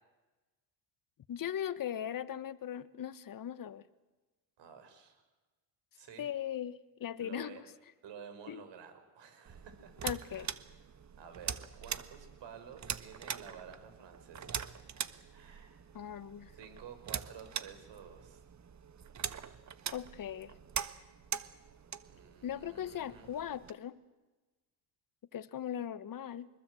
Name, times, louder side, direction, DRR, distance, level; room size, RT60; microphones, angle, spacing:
voice 1, 1.3-3.8 6.2-7.6 8.5-8.6 10.0-10.5 15.9-16.5 19.9-20.5 22.4-23.9 25.3-26.5, left 10 dB, 45° left, 15 dB, 1.4 m, -39 dB
voice 2, 4.6-5.3 5.9-6.3 7.2-7.6 8.0-10.5 11.2-14.7 15.3-15.9 16.5-18.4 22.1-23.3, right 7 dB, 60° right, 8 dB, 5.9 m, -52 dB
sound 1, 9.5-23.7, right 8 dB, 35° right, 1.4 m, -43 dB
24.5 x 21.0 x 8.0 m, 1.2 s
supercardioid pair, 75°, 48 cm